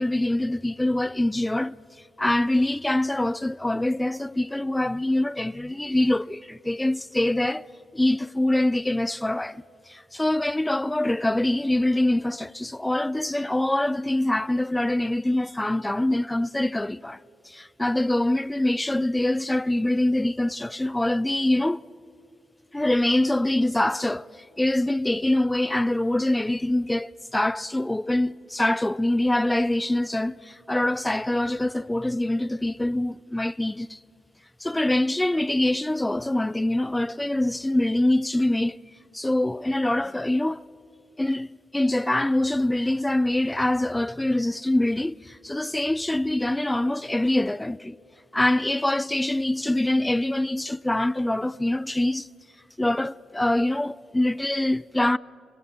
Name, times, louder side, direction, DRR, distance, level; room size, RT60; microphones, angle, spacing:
voice 1, 0.0-1.7 2.2-7.7 7.9-9.6 9.9-17.2 17.5-21.8 22.7-24.3 24.6-34.0 34.6-38.8 39.1-40.6 41.2-48.0 48.3-52.3 52.8-55.2, left 1 dB, 10° left, 0.5 m, -24 dB
27.5 x 21.0 x 7.6 m
cardioid pair, 75°, 0 cm